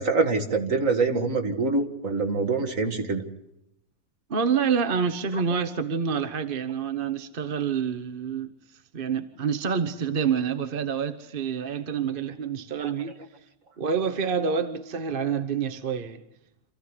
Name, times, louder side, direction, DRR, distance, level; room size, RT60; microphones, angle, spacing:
voice 1, 0.0-3.2 12.8-12.9, right 3 dB, 60° right, 2.4 m, -25 dB
voice 2, 4.3-8.5 8.9-13.1 13.8-16.2, right 6 dB, 40° right, 1.1 m, -27 dB
27.5 x 15.0 x 9.8 m
omnidirectional pair, 1.6 m